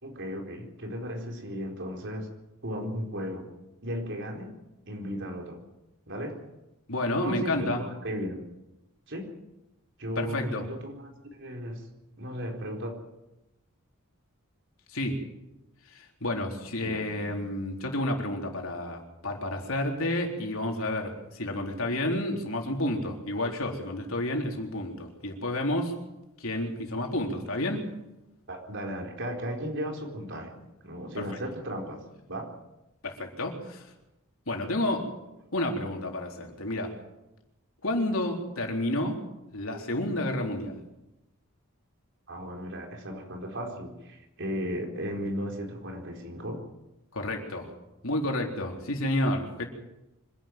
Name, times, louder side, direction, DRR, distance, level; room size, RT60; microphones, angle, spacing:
voice 1, 0.0-2.3 2.6-3.5 3.8-4.5 4.9-5.6 6.1-6.4 7.1-8.4 9.1-9.3 10.0-11.8 12.2-12.9 16.8-17.0 28.5-30.5 30.8-32.0 32.3-32.5 42.3-46.6, equal, 55° right, 2 dB, 4.3 m, -35 dB
voice 2, 6.9-7.8 10.2-10.7 14.9-15.2 15.9-25.9 26.4-27.8 31.1-31.3 33.0-33.9 34.5-35.1 35.5-36.9 37.8-39.2 39.5-40.8 47.1-47.7 48.0-49.7, left 1 dB, 65° left, 2 dB, 3.9 m, -30 dB
25.5 x 11.5 x 9.2 m, 0.94 s
head